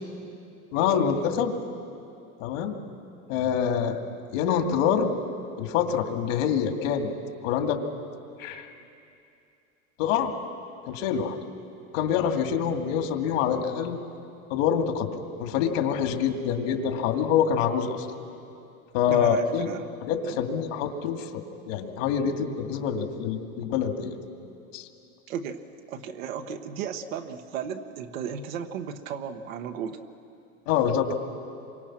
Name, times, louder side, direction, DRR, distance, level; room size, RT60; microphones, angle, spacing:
voice 1, 0.7-1.5 2.4-2.7 3.3-4.0 4.3-5.1 5.6-7.1 7.4-7.8 8.4-8.7 10.0-10.3 10.9-11.4 11.9-14.0 14.5-18.1 18.9-19.7 20.1-24.1 24.7-24.9 30.7-31.1, left 8 dB, 70° left, 5 dB, 2.3 m, -26 dB
voice 2, 19.1-19.9 20.2-20.4 25.3-25.6 25.9-30.0, right 7 dB, 80° right, 5 dB, 1.4 m, -34 dB
27.0 x 24.0 x 6.1 m, 2.6 s
supercardioid pair, 135°, 40 cm